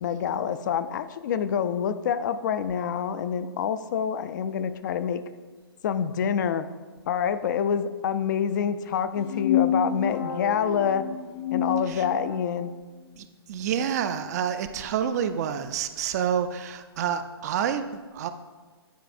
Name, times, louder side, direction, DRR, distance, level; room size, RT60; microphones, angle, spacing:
voice 1, 0.0-5.2 5.8-6.6 7.1-11.0 11.5-12.7, left 8 dB, 45° left, 11 dB, 0.4 m, -27 dB
sound 1, 9.2-12.6, left 7 dB, 85° left, 1.0 m, -28 dB
voice 2, 13.2-17.8 18.1-18.3, right 8 dB, 40° right, 10 dB, 0.4 m, -28 dB
9.1 x 4.6 x 2.6 m, 1.3 s
figure-of-eight pair, 125°, 13 cm